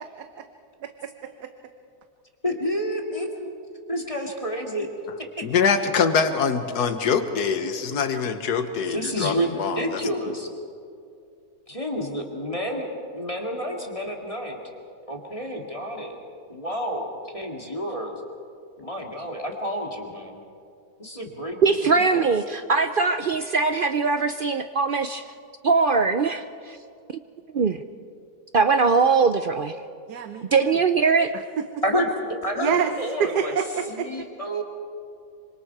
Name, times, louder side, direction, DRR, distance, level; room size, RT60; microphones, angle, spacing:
voice 1, 0.8-1.5 30.1-30.7 31.6-31.7 32.6-32.9 33.2-34.1, right 7 dB, 90° right, 8 dB, 1.5 m, -27 dB
voice 2, 2.4-3.5 3.9-4.9 5.2-5.3 8.9-10.5 11.7-12.9 13.1-14.6 15.1-16.2 16.5-18.2 18.8-20.4 21.0-22.3 31.8-32.1 32.4-33.5 33.9-34.6, equal, 20° left, 1 dB, 2.2 m, -29 dB
voice 3, 5.4-10.0, left 6 dB, 85° left, 8 dB, 1.7 m, -24 dB
voice 4, 21.6-25.3 25.6-26.8 27.1-27.2 27.5-27.8 28.5-29.8 30.5-31.3, right 4 dB, 70° right, 9 dB, 0.5 m, -21 dB
26.5 x 25.0 x 4.7 m, 2.4 s
omnidirectional pair, 1.7 m